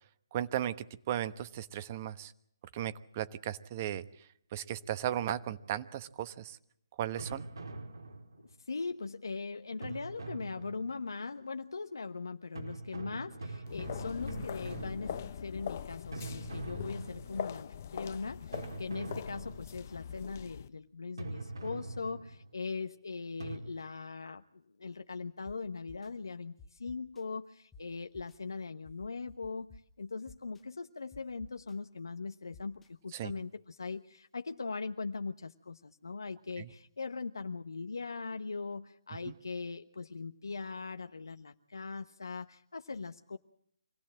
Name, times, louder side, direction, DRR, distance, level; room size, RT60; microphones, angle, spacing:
voice 1, 0.3-2.3 2.7-4.0 4.5-6.6 7.0-7.5 33.1-33.3 36.6-36.7 39.3-39.4, right 11 dB, 30° right, 13 dB, 1.1 m, -36 dB
sound 1, 7.2-8.6 9.8-11.1 12.5-15.6 16.1-17.6 18.5-19.9 21.2-22.6 23.4-23.6, right 2 dB, 85° right, 4.6 m, -43 dB
voice 2, 8.4-43.4, left 4 dB, 75° left, 8 dB, 1.1 m, -40 dB
sound 2, 13.7-20.7, left 8 dB, 40° left, 1.0 m, -42 dB
sound 3, 25.5-25.6 25.9-26.1 26.6-27.2 27.7-27.8 28.1-28.3 28.8-29.8 30.3-30.6 31.1-31.7 32.5-32.9, left 4 dB, 10° left, 1.2 m, -54 dB
25.5 x 17.0 x 7.6 m, 0.70 s
figure-of-eight pair, 155°, 2 cm